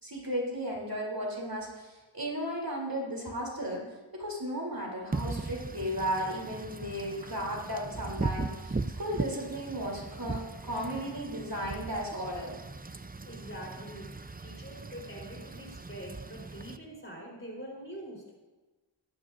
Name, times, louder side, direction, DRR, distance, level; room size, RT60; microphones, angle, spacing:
voice 1, 0.0-3.8 4.1-12.5, equal, 50° right, -2 dB, 3.2 m, -35 dB
Wind / Rain, 5.1-16.8, right 3 dB, 20° right, 0.5 m, -38 dB
voice 2, 13.2-18.4, equal, 25° left, -2 dB, 3.8 m, -44 dB
16.0 x 12.0 x 2.6 m, 1.2 s
wide cardioid pair, 40°, 46 cm